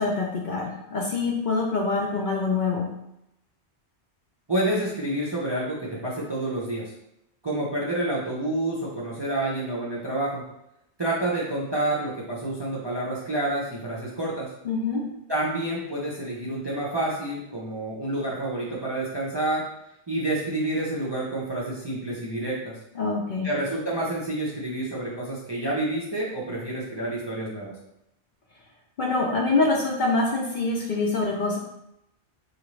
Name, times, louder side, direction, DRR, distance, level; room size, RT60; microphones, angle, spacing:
voice 1, 0.0-2.9 14.6-15.0 23.0-23.5 29.0-31.6, left 3 dB, 55° left, -2 dB, 0.6 m, -25 dB
voice 2, 4.5-6.9 7.4-10.4 11.0-14.5 15.3-19.6 20.1-22.7 23.4-27.7, right 1 dB, 30° right, -5 dB, 0.5 m, -28 dB
3.8 x 2.5 x 3.1 m, 0.84 s
omnidirectional pair, 1.1 m